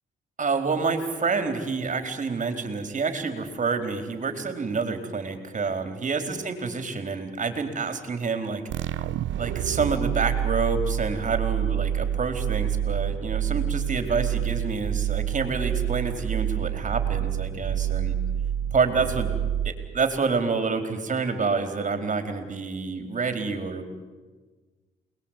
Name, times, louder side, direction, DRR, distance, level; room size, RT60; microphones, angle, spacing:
voice 1, 0.4-8.6 8.9-9.1 9.4-18.1 18.7-19.3 19.6-23.9, right 4 dB, 40° right, 7 dB, 4.4 m, -28 dB
sound 1, 8.7-20.2, right 10 dB, 75° right, 0.9 m, -28 dB
29.0 x 21.0 x 9.2 m, 1.3 s
cardioid pair, 90°, 20 cm